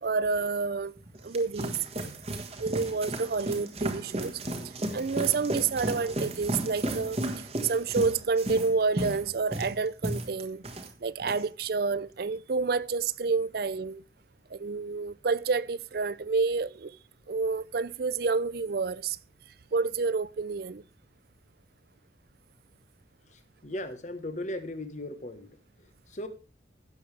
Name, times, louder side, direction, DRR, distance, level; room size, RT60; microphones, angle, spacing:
voice 1, 0.0-0.9 1.2-1.8 2.6-4.4 4.9-10.6 11.0-14.0 14.5-17.0 17.3-19.2 19.7-20.8, right 4 dB, 55° right, 0.5 m, -29 dB
sound 1, 1.0-10.9 11.2-11.6, right 1 dB, 35° right, 1.5 m, -34 dB
voice 2, 23.6-25.5 26.1-26.3, left 1 dB, 40° left, 1.3 m, -36 dB
16.5 x 7.1 x 3.3 m
head